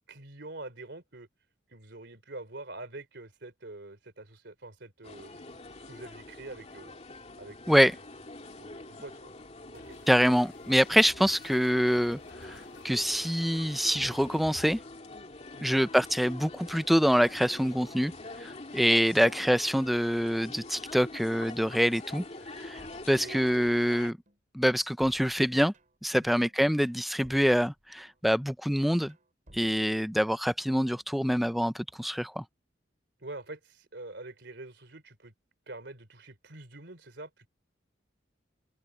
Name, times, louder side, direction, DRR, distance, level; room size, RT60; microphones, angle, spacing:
voice 1, 0.1-1.3 1.7-7.0 7.4-8.0 8.6-9.3 9.7-10.0 15.5-15.9 19.2-19.4 23.2-23.4 26.4-26.5 33.2-35.3 35.7-37.5, right 2 dB, 65° right, 3.5 m, -45 dB
sound 1, 5.0-24.1, left 2 dB, 35° left, 2.5 m, -45 dB
sound 2, 9.7-14.8, left 2 dB, 85° left, 4.9 m, -53 dB
voice 2, 10.1-12.6 12.8-14.8 15.6-18.1 18.4-22.2 22.6-22.8 23.1-24.2 24.5-25.7 26.0-29.1 29.5-32.4, equal, ahead, 0.6 m, -25 dB
sound 3, 22.8-23.9 24.3-26.1 26.5-28.4 28.7-30.6 30.9-31.5, equal, 40° right, 6.4 m, -59 dB
open air
head